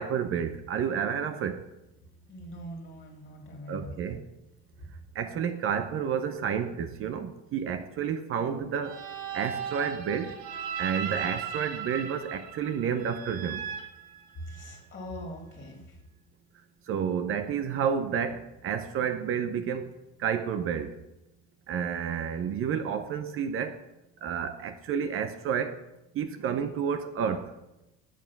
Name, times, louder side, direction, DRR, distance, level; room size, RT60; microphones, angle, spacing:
voice 1, 0.0-1.6 3.7-4.2 5.1-9.0 9.3-10.4 10.8-13.7 16.9-19.9 20.2-21.0 21.7-23.8 24.2-25.8 26.1-27.5, right 7 dB, 45° right, 10 dB, 0.8 m, -30 dB
voice 2, 2.3-4.2 14.3-16.0, equal, 30° left, 1 dB, 2.3 m, -42 dB
sound 1, 8.8-14.8, right 7 dB, 65° right, 1.4 m, -37 dB
7.7 x 7.3 x 5.9 m, 0.94 s
supercardioid pair, 115°, 31 cm